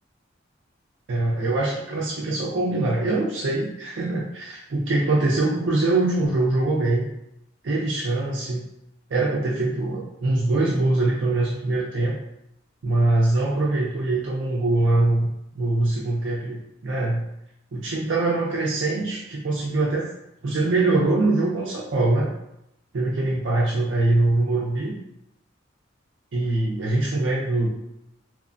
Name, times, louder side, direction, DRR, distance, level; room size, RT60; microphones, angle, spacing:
voice 1, 1.1-7.1 7.6-8.6 9.1-12.1 12.8-15.3 15.5-17.3 17.7-20.1 20.4-22.3 22.9-24.9 26.3-27.7, right 2 dB, 75° right, -5 dB, 0.5 m, -23 dB
2.9 x 2.1 x 2.5 m, 0.84 s
head